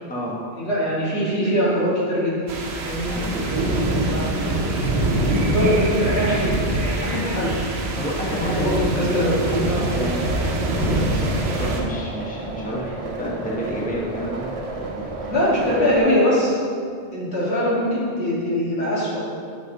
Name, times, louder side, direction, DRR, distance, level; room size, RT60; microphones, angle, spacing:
voice 1, 0.6-2.4 2.8-3.1 3.7-4.9 5.4-7.5 8.3-9.9 10.8-11.2 15.3-16.6 17.1-19.2, equal, 80° left, -7 dB, 2.2 m, -23 dB
sound 1, 2.5-11.8, right 2 dB, 75° right, 1.1 m, -24 dB
voice 2, 8.0-10.5 11.6-14.5 14.7-15.3, equal, 10° left, -5 dB, 1.0 m, -29 dB
sound 2, 9.5-16.0, right 2 dB, 40° right, 0.6 m, -33 dB
7.0 x 5.9 x 3.9 m, 2.2 s
omnidirectional pair, 1.1 m